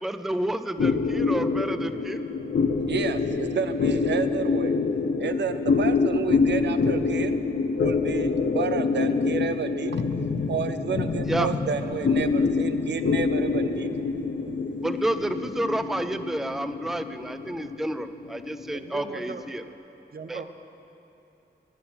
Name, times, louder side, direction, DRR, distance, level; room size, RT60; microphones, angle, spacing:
voice 1, 0.0-2.3 11.3-11.5 14.8-19.6 20.3-20.4, right 1 dB, ahead, 10 dB, 0.4 m, -30 dB
sound 1, 0.8-19.5, left 4 dB, 85° left, 0.9 m, -26 dB
voice 2, 2.9-4.8 5.2-7.4 7.8-9.9 10.5-13.9, right 6 dB, 80° right, 10 dB, 0.6 m, -30 dB
voice 3, 18.7-19.4 20.1-20.5, right 5 dB, 60° right, 8 dB, 0.9 m, -38 dB
19.0 x 10.5 x 6.1 m, 2.9 s
wide cardioid pair, 125°, 18 cm